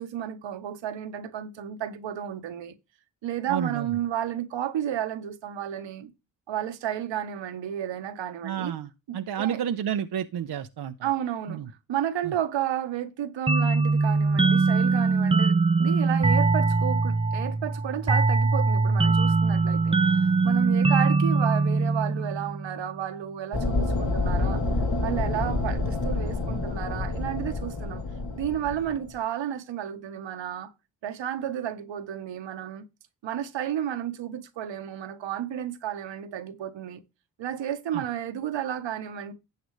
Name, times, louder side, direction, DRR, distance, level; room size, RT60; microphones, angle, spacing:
voice 1, 0.0-2.7 3.2-6.1 6.5-8.7 9.1-9.6 11.0-11.6 11.9-20.0 20.4-24.6 25.0-28.0 28.4-30.7 31.0-32.8 33.2-37.0 37.4-39.3, right 10 dB, 75° right, 1.3 m, -32 dB
voice 2, 3.5-3.9 8.4-10.9 11.5-11.7 12.2-12.3 37.9-38.0, right 9 dB, 60° right, 0.9 m, -30 dB
sound 1, 13.5-22.8, right 3 dB, 15° right, 0.6 m, -22 dB
sound 2, 23.5-29.2, left 2 dB, 55° left, 2.9 m, -28 dB
12.0 x 8.0 x 3.2 m
supercardioid pair, 45°, 45 cm